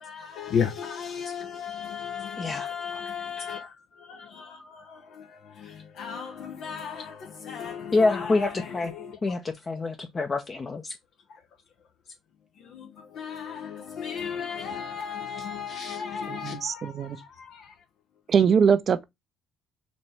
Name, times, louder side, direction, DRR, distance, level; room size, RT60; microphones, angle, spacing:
voice 1, 0.0-3.7 4.1-5.0 5.6-8.6 9.0-9.2 12.7-12.9 13.1-17.6, left 7 dB, 65° left, 0.8 m, -34 dB
voice 2, 2.4-2.7 3.4-3.5 7.9-8.9 9.2-10.9 16.1-16.2, left 3 dB, 35° left, 0.8 m, -26 dB
voice 3, 16.3-17.2 18.3-19.0, right 7 dB, 50° right, 0.6 m, -22 dB
4.2 x 2.9 x 3.3 m
hypercardioid pair, 60°, 0 cm